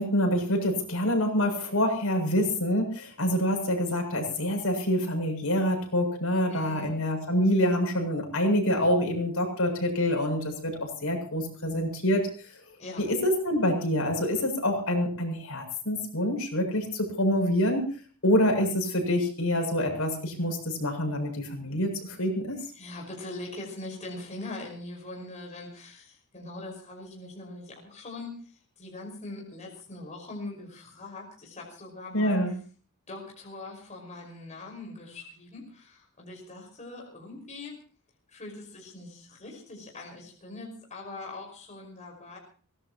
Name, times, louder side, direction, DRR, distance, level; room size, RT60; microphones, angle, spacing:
voice 1, 0.0-12.5 13.0-17.9 18.2-22.6 32.1-32.5, equal, 65° left, 2 dB, 7.6 m, -26 dB
voice 2, 6.5-6.9 12.8-13.1 22.7-32.6 33.1-37.8 38.3-42.4, left 2 dB, 35° left, 0 dB, 5.5 m, -42 dB
24.0 x 19.0 x 3.0 m, 0.42 s
head